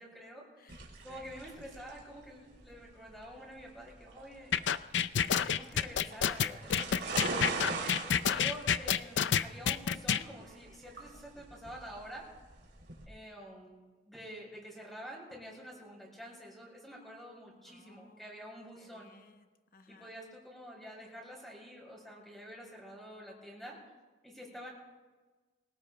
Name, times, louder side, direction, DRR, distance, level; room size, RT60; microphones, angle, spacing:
voice 1, 0.0-0.5 1.0-4.5 5.2-8.0 8.3-12.3 13.1-19.1 19.9-23.8 24.2-24.7, equal, ahead, -2 dB, 5.6 m, -48 dB
voice 2, 0.6-1.3 7.8-8.4 17.7-18.5 18.8-19.5 19.7-20.1, left 3 dB, 55° left, 7 dB, 1.0 m, -61 dB
sound 1, 0.7-13.1, right 3 dB, 70° right, 3.0 m, -42 dB
sound 2, 4.5-10.2, left 8 dB, 80° left, 0.5 m, -28 dB
25.0 x 18.0 x 2.2 m, 1.3 s
head